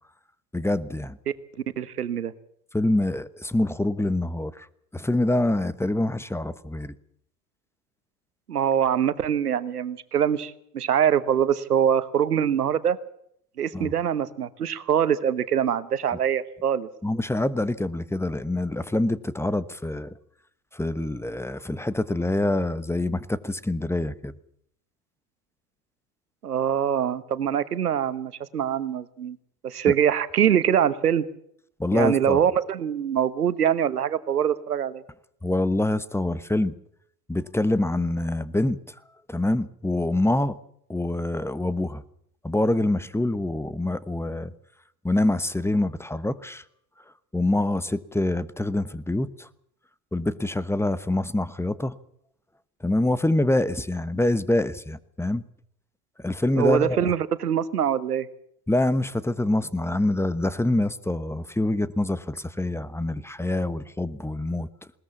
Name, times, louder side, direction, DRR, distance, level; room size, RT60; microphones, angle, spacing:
voice 1, 0.5-1.2 2.7-4.7 4.9-6.9 13.7-13.9 17.0-20.1 20.7-24.3 31.8-32.4 35.4-36.7 37.3-38.9 39.3-40.6 40.9-42.0 42.4-44.5 45.0-46.6 47.3-49.5 50.1-52.0 52.8-55.4 56.2-57.1 58.7-64.7, left 1 dB, 5° left, 16 dB, 1.1 m, -25 dB
voice 2, 1.8-2.3 8.5-13.0 13.6-16.9 26.4-29.4 29.6-31.3 31.9-35.0 56.6-58.3, right 9 dB, 90° right, 15 dB, 1.2 m, -24 dB
20.5 x 19.0 x 7.2 m, 0.70 s
hypercardioid pair, 70°, 45 cm